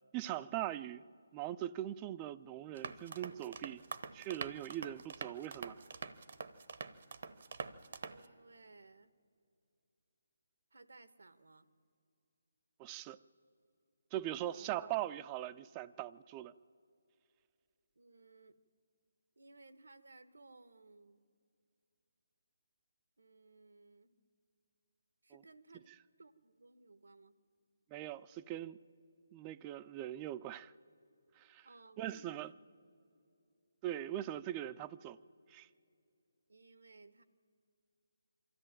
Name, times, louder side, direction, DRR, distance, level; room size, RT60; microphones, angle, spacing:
voice 1, 0.1-1.0 1.3-3.8 4.1-5.8 12.8-13.2 14.1-16.5 25.3-25.4 27.9-28.8 29.3-30.7 31.4-31.7 32.0-32.5 33.8-35.2 35.5-35.7, right 13 dB, 20° right, 0.4 m, -41 dB
sound 1, 2.8-8.3, right 5 dB, 60° right, 0.9 m, -46 dB
voice 2, 8.1-9.1 10.7-11.7 14.4-14.7 18.0-18.6 19.4-21.2 23.2-24.3 25.2-25.9 26.2-27.4 31.6-32.5 36.5-37.2, right 3 dB, 75° right, 1.0 m, -60 dB
23.5 x 13.5 x 8.9 m
figure-of-eight pair, 150°, 0 cm